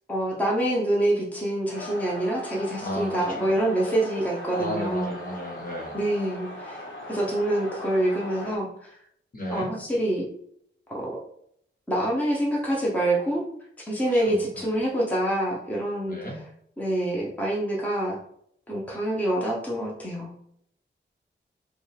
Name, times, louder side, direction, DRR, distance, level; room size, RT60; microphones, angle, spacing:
voice 1, 0.1-5.1 5.9-9.0 9.5-10.3 10.9-11.2 11.9-13.4 13.8-16.2 16.8-18.2 18.7-20.3, right 1 dB, 5° left, -4 dB, 0.8 m, -26 dB
sound 1, 1.7-8.6, left 1 dB, 75° left, 1.2 m, -39 dB
voice 2, 2.8-3.5 4.5-6.0 9.3-9.7 14.0-14.7 16.1-16.4, equal, 45° left, -2 dB, 1.3 m, -33 dB
5.0 x 2.4 x 3.3 m, 0.69 s
wide cardioid pair, 130°, 20 cm